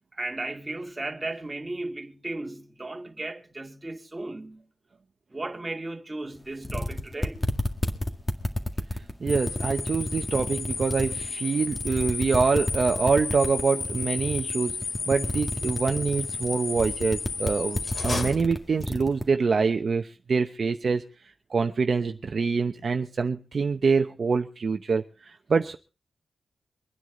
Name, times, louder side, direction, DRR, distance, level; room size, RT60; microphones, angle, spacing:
voice 1, 0.1-4.7 5.3-7.5, right 2 dB, 20° right, 2.1 m, -35 dB
sound 1, 6.4-6.5 6.6-11.3 11.7-19.2, left 1 dB, 15° left, 2.0 m, -30 dB
voice 2, 9.2-14.8 15.1-21.0 21.5-25.0 25.5-25.8, right 5 dB, 50° right, 0.9 m, -25 dB
sound 2, 9.3-18.3, left 4 dB, 80° left, 1.8 m, -34 dB
sound 3, 17.8-19.2, left 2 dB, 45° left, 2.5 m, -35 dB
24.5 x 9.7 x 3.9 m
wide cardioid pair, 115°, 0 cm